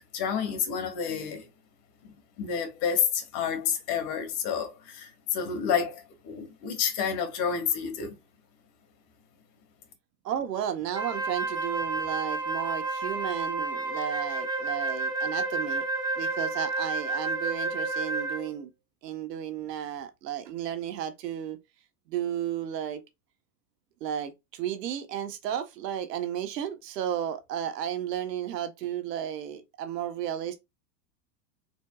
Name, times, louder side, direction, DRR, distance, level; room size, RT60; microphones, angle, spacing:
voice 1, 0.0-1.5 2.0-8.2, left 7 dB, 50° left, 1.9 m, -30 dB
voice 2, 10.2-15.8 16.2-18.7 19.0-21.6 22.1-23.0 24.0-30.6, right 10 dB, 75° right, 1.3 m, -33 dB
Wind instrument woodwind instrument, 10.9-18.6, right 3 dB, 10° right, 1.1 m, -30 dB
4.5 x 4.1 x 2.4 m
hypercardioid pair, 120°, 49 cm